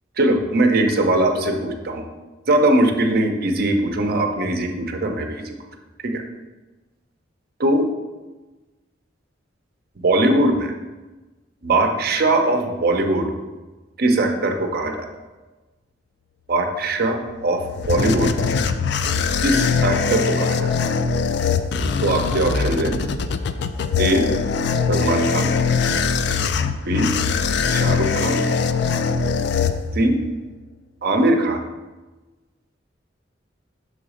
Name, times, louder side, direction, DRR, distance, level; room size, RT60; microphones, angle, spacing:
voice 1, 0.2-2.1 2.5-5.6 6.0-6.2 7.6-7.9 10.0-10.7 11.6-13.3 14.0-15.1 16.5-18.3 19.4-20.9 22.0-23.0 24.0-24.3 24.9-25.5 26.8-27.1 27.7-28.4 29.9-30.2 31.0-31.6, right 1 dB, 55° right, 5 dB, 0.7 m, -20 dB
sound 1, 17.3-30.3, left 5 dB, 65° left, 0.4 m, -22 dB
6.5 x 4.0 x 4.9 m, 1.2 s
head